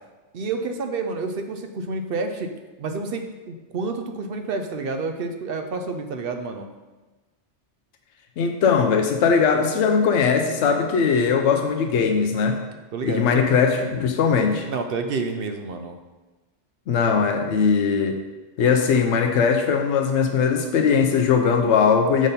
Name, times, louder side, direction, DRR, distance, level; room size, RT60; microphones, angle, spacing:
voice 1, 0.3-2.5 2.8-6.7 12.9-13.5 14.7-16.0, right 3 dB, 60° right, 6 dB, 0.7 m, -29 dB
voice 2, 8.4-12.6 13.0-14.7 16.9-18.2 18.6-22.3, left 6 dB, 85° left, 3 dB, 0.9 m, -20 dB
6.3 x 5.2 x 4.1 m, 1.2 s
omnidirectional pair, 1.2 m